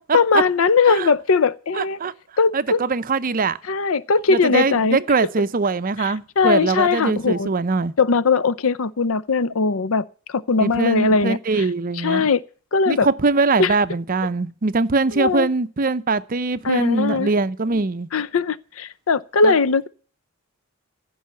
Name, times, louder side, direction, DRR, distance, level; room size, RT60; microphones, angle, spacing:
voice 1, 0.1-2.0 2.4-2.8 3.7-5.0 6.0-7.5 8.0-11.4 12.0-12.4 12.7-13.1 13.6-13.8 15.1-15.5 16.6-17.3 18.1-19.9, left 4 dB, 75° left, 0.6 m, -20 dB
voice 2, 1.7-2.1 2.5-3.6 4.3-7.9 10.6-12.3 12.9-18.1 19.4-19.5, right 3 dB, 40° right, 0.6 m, -22 dB
15.5 x 5.6 x 9.4 m
head